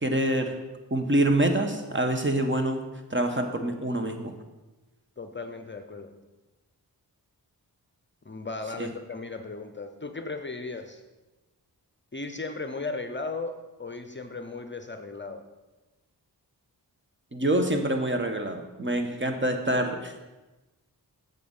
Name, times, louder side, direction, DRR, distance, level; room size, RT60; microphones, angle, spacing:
voice 1, 0.0-0.6 0.9-2.8 3.1-4.3 8.8-8.9 17.3-20.2, right 1 dB, 30° right, 5 dB, 1.3 m, -26 dB
voice 2, 5.2-6.1 8.2-11.0 12.1-15.4, left 3 dB, 25° left, 8 dB, 0.8 m, -36 dB
8.5 x 6.8 x 5.5 m, 1.1 s
cardioid pair, 45°, 41 cm